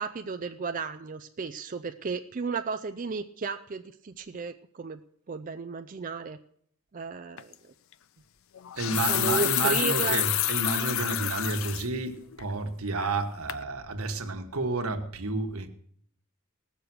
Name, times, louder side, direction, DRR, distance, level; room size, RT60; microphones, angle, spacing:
voice 1, 0.0-5.0 5.3-6.4 6.9-7.6 8.9-10.2, right 4 dB, 40° right, 7 dB, 0.5 m, -34 dB
sound 1, 7.4-7.5 8.5-11.9 12.3-12.4 12.9-13.2 13.5-13.6, left 13 dB, 65° left, 0.5 m, -28 dB
voice 2, 8.8-15.7, right 3 dB, 85° right, 5 dB, 1.5 m, -30 dB
18.5 x 6.8 x 6.1 m, 0.62 s
head